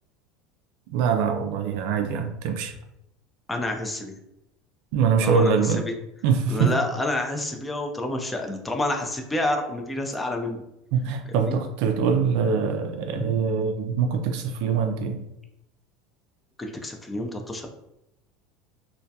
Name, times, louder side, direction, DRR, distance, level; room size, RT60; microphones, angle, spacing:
voice 1, 0.9-2.7 4.9-5.8 6.2-6.7 10.9-15.3, right 6 dB, 70° right, 5 dB, 0.3 m, -23 dB
voice 2, 3.5-4.2 5.2-5.9 6.5-10.6 11.3-11.5 13.2-13.3 16.6-17.7, left 1 dB, 10° left, 3 dB, 0.4 m, -29 dB
2.2 x 2.2 x 2.6 m, 0.84 s
supercardioid pair, 120°, 0 cm